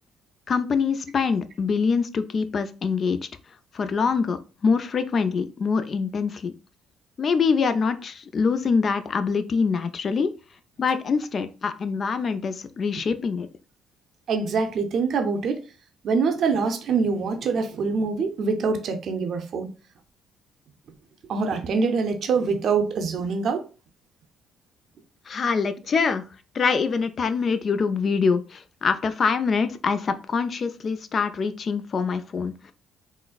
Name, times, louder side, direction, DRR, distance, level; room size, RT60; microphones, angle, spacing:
voice 1, 0.5-3.2 3.7-4.4 4.6-6.5 7.2-10.3 10.8-13.5 25.3-26.2 26.5-32.7, left 5 dB, 50° left, 0.3 m, -24 dB
voice 2, 14.3-15.6 16.0-19.7 21.3-23.6, right 5 dB, 60° right, 0.5 m, -24 dB
3.7 x 2.1 x 2.3 m
supercardioid pair, 70°, 0 cm